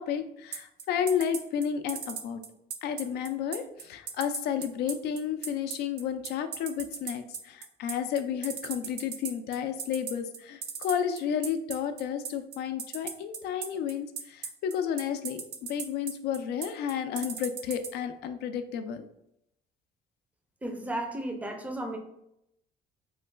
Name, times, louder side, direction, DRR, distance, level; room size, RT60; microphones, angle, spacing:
voice 1, 0.0-2.4 2.8-19.1, left 8 dB, 75° left, 8 dB, 0.4 m, -32 dB
sound 1, 0.5-17.9, right 7 dB, 70° right, 0.5 m, -36 dB
voice 2, 20.6-22.0, right 1 dB, 10° right, 3 dB, 0.5 m, -34 dB
3.1 x 2.1 x 3.2 m, 0.80 s
cardioid pair, 110°, 17 cm